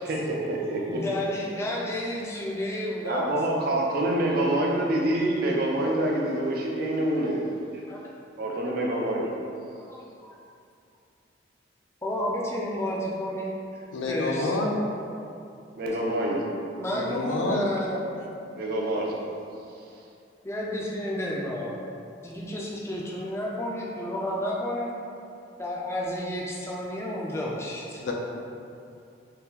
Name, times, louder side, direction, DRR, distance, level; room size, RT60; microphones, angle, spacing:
voice 1, 0.0-1.0 3.0-7.4 8.4-9.3 15.8-16.5 18.6-19.2, right 1 dB, 50° right, -2 dB, 0.4 m, -26 dB
voice 2, 0.8-3.3 7.9-8.0 9.8-10.4 12.0-14.6 16.8-18.0 20.4-21.8 22.2-24.9 25.6-28.0, left 1 dB, 15° left, -4 dB, 0.3 m, -31 dB
voice 3, 13.9-14.8 16.9-17.7 28.0-28.1, left 2 dB, 85° left, 0 dB, 0.4 m, -28 dB
2.8 x 2.3 x 3.6 m, 2.6 s
head